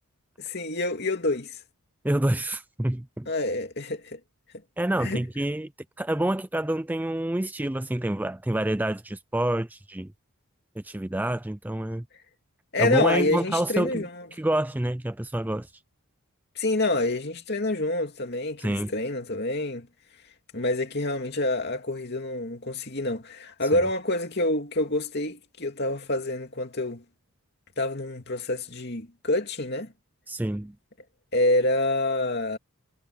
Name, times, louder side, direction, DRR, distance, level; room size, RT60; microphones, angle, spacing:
voice 1, 0.4-1.6 3.3-4.2 5.0-5.2 12.7-14.1 16.6-19.9 20.5-27.0 27.8-29.9 31.3-32.6, left 2 dB, 45° left, 2.8 m, -27 dB
voice 2, 2.0-3.3 4.8-5.7 6.0-10.1 10.8-12.0 12.8-14.0 14.3-15.7 18.6-18.9 30.3-30.8, right 1 dB, 10° right, 0.4 m, -27 dB
head